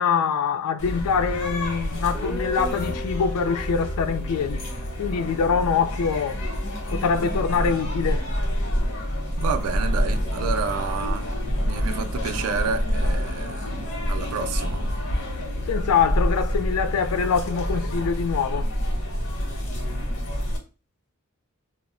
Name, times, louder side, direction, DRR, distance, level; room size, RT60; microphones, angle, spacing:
voice 1, 0.0-4.6 5.0-6.4 6.9-8.2 15.7-18.7, left 6 dB, 85° left, 0.3 m, -24 dB
sound 1, 0.8-20.6, equal, 60° left, 0.8 m, -27 dB
Guitar, 2.1-6.0, left 1 dB, 10° left, 0.4 m, -38 dB
voice 2, 9.4-11.3 11.6-13.7 14.1-14.9, right 6 dB, 85° right, 0.4 m, -30 dB
2.1 x 2.0 x 3.7 m
head